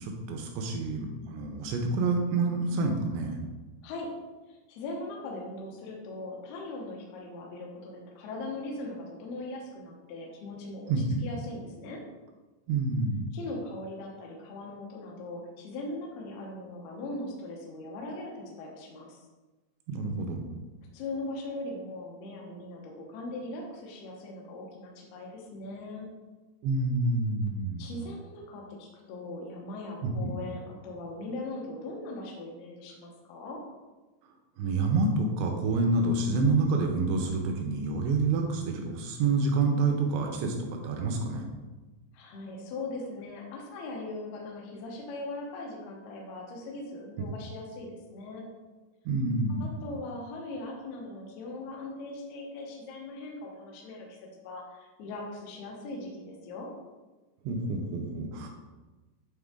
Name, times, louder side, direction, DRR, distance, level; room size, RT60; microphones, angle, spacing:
voice 1, 0.0-3.4 10.9-11.2 12.7-13.3 19.9-20.4 26.6-27.9 30.0-30.3 34.6-41.4 47.2-47.3 49.1-49.8 57.4-58.5, right 3 dB, 80° right, 3 dB, 2.7 m, -28 dB
voice 2, 4.5-10.9 11.2-12.0 13.3-19.2 20.9-26.1 27.8-33.6 42.1-48.4 49.5-56.7, left 2 dB, 70° left, -1 dB, 2.5 m, -40 dB
9.0 x 3.8 x 3.7 m, 1.2 s
omnidirectional pair, 5.5 m